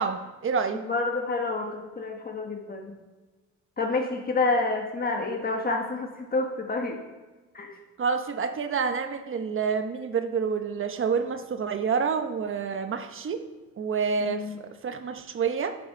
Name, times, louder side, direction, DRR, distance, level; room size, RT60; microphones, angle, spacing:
voice 1, 0.0-0.8 8.0-13.4 13.8-14.5 14.8-15.8, right 6 dB, 45° right, 8 dB, 1.1 m, -28 dB
voice 2, 0.7-3.0 3.8-7.0 7.5-7.7 14.2-14.6, left 3 dB, 30° left, 1 dB, 1.3 m, -28 dB
10.5 x 6.1 x 5.3 m, 1.3 s
cardioid pair, 90°, 30 cm